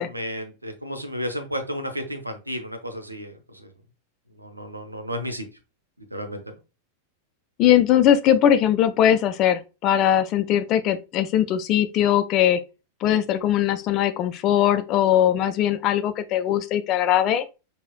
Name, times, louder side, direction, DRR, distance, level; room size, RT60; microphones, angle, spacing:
voice 1, 0.0-3.7 4.4-5.5 6.1-6.5, equal, 85° right, 0.6 m, -32 dB
voice 2, 7.6-12.6 13.0-17.5, left 10 dB, 35° left, 0.4 m, -20 dB
4.7 x 2.7 x 2.3 m
figure-of-eight pair, 90°, 0 cm